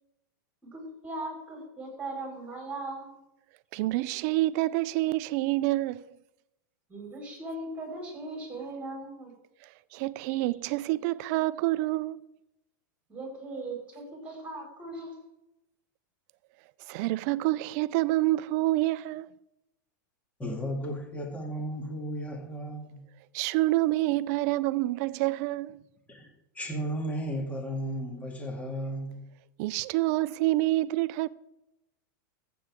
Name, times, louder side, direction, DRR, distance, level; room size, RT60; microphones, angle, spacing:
voice 1, 0.6-3.2 6.9-9.3 10.3-10.4 13.1-15.2, right 2 dB, 10° right, 4.8 m, -39 dB
voice 2, 3.7-6.0 9.9-12.2 16.9-19.3 23.3-25.8 29.6-31.3, right 18 dB, 55° right, 0.5 m, -27 dB
voice 3, 20.4-23.0 26.1-26.3 26.6-29.3, equal, 15° left, 2.0 m, -34 dB
15.0 x 7.9 x 3.6 m
supercardioid pair, 130°, 11 cm